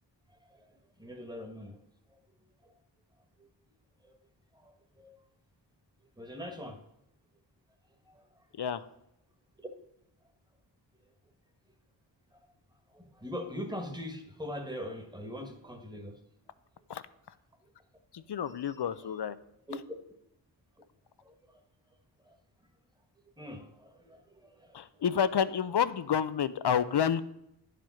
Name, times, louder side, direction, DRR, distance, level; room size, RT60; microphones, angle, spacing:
voice 1, 1.0-1.8 4.6-4.7 5.0-5.2 6.2-6.8 8.1-8.2 12.9-16.1 19.7-19.8 21.2-21.3 22.3-22.4 23.4-24.8, left 1 dB, 10° right, 5 dB, 1.5 m, -41 dB
voice 2, 18.1-19.4 24.7-27.2, left 8 dB, 60° left, 14 dB, 0.6 m, -29 dB
10.5 x 5.1 x 5.7 m, 0.83 s
cardioid pair, 55°, 46 cm